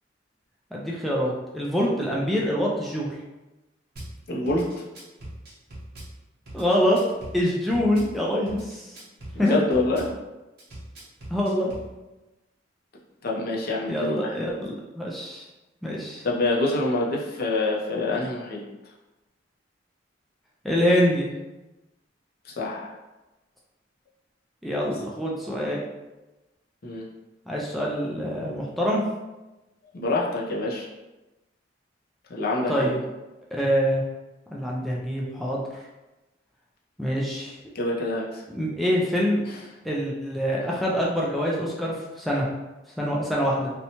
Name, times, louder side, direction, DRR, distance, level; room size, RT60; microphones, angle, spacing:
voice 1, 0.7-3.1 6.5-7.0 7.3-9.0 9.4-9.6 11.3-11.7 13.9-15.4 15.8-16.3 20.6-21.3 24.6-25.8 27.5-29.0 32.7-33.0 33.5-34.0 34.5-35.8 37.0-37.6 38.5-39.4 39.8-42.5 43.0-43.7, equal, ahead, -5 dB, 0.3 m, -25 dB
Drum kit / Bass drum, 4.0-4.1 4.5-6.1 6.5-8.1 8.5-10.1 10.6-11.9, right 1 dB, 55° right, 0.8 m, -41 dB
voice 2, 4.3-4.6 9.4-10.1 13.2-14.3 16.2-18.6 22.5-22.9 26.8-27.0 29.9-30.9 32.3-32.9 37.7-38.4, left 2 dB, 55° left, -3 dB, 0.5 m, -26 dB
2.7 x 2.1 x 2.8 m, 1.1 s
head